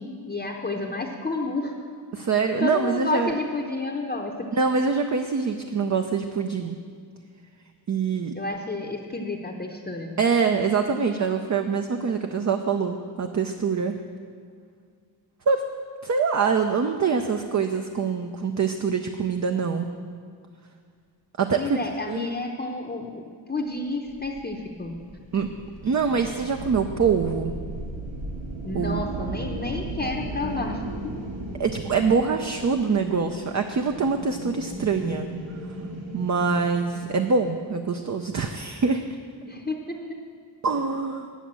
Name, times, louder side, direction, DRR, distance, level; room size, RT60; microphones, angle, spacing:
voice 1, 0.0-1.7 2.6-4.5 8.4-10.2 21.6-23.2 23.5-25.0 28.6-31.1 39.5-40.2, left 2 dB, 20° left, 1 dB, 0.7 m, -30 dB
voice 2, 2.1-3.4 4.5-6.8 7.9-8.4 10.2-14.0 15.5-15.6 16.0-19.9 21.4-21.8 22.1-22.3 25.3-25.5 25.8-27.5 28.7-29.0 31.6-35.3 36.1-39.0 40.6-41.3, right 5 dB, 40° right, 5 dB, 0.6 m, -24 dB
sound 1, 24.1-37.5, right 2 dB, 75° right, 2.2 m, -36 dB
10.5 x 7.0 x 7.4 m, 2.1 s
wide cardioid pair, 105°, 46 cm